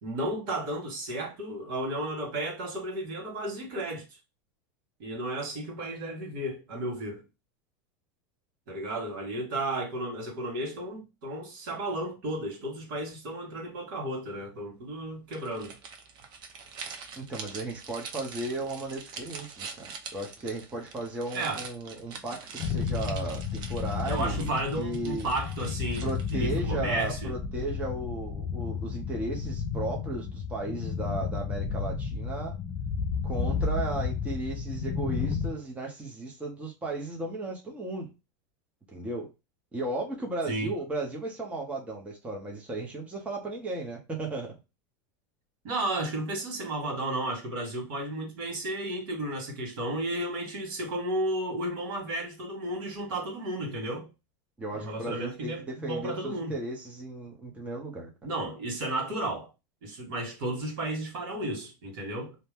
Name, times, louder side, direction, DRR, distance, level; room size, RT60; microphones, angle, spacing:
voice 1, 0.0-4.0 5.0-7.2 8.7-15.8 21.3-21.6 24.1-27.3 40.5-40.7 45.6-54.1 54.7-56.5 58.2-59.5 59.8-62.4, right 1 dB, 70° right, 1.5 m, -33 dB
sound 1, 15.3-26.5, right 5 dB, 45° right, 0.7 m, -44 dB
voice 2, 17.2-25.3 26.0-32.5 33.2-38.1 38.9-39.3 39.7-44.5 54.6-58.3, right 2 dB, 10° right, 0.8 m, -35 dB
sound 2, 22.6-35.5, left 5 dB, 45° left, 0.5 m, -32 dB
2.7 x 2.1 x 3.3 m
supercardioid pair, 140°, 11 cm